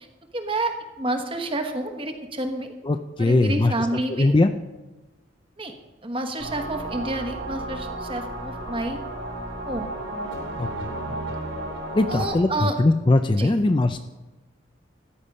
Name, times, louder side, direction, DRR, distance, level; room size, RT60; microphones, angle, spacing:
voice 1, 0.3-0.7 1.0-2.7 3.2-4.3 5.6-5.7 6.0-9.0 9.6-9.9 12.1-12.8 13.4-13.5, right 1 dB, 25° right, 6 dB, 1.2 m, -29 dB
voice 2, 2.8-4.5 10.6-11.2 11.9-14.0, left 2 dB, 25° left, 9 dB, 0.4 m, -21 dB
sound 1, 6.4-12.3, right 1 dB, 70° right, 3.5 m, -33 dB
14.0 x 10.0 x 5.4 m, 1.1 s
head